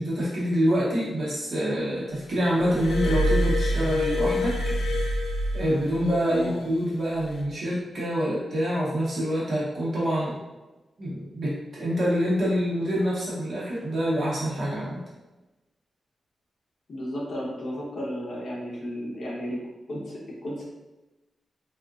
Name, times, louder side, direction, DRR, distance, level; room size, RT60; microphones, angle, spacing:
voice 1, 0.0-4.6 5.5-10.4 11.0-15.0, equal, 50° right, -8 dB, 0.9 m, -26 dB
Glass, 2.6-6.2 7.2-7.4, equal, 70° left, 0.5 m, -26 dB
voice 2, 6.3-6.6 16.9-19.6 19.9-20.6, equal, 50° left, -4 dB, 0.8 m, -33 dB
3.6 x 2.4 x 2.4 m, 1.1 s
wide cardioid pair, 170°, 0 cm